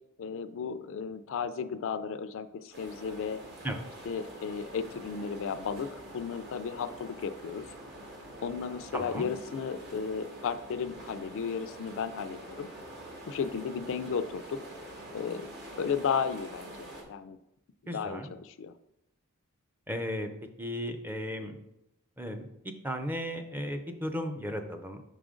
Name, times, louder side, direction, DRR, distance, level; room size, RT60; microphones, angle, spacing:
voice 1, 0.2-3.4 4.1-7.6 8.4-12.7 13.3-14.7 15.1-15.5 15.8-17.4 17.9-18.7, left 6 dB, 65° left, 11 dB, 0.4 m, -34 dB
sound 1, 2.7-17.0, right 1 dB, 55° right, 1.4 m, -46 dB
voice 2, 8.9-9.3 17.9-18.3 19.9-20.3 20.6-21.5 22.2-22.5 22.8-25.0, equal, 10° right, 6 dB, 0.5 m, -35 dB
5.4 x 5.0 x 3.7 m, 0.86 s
head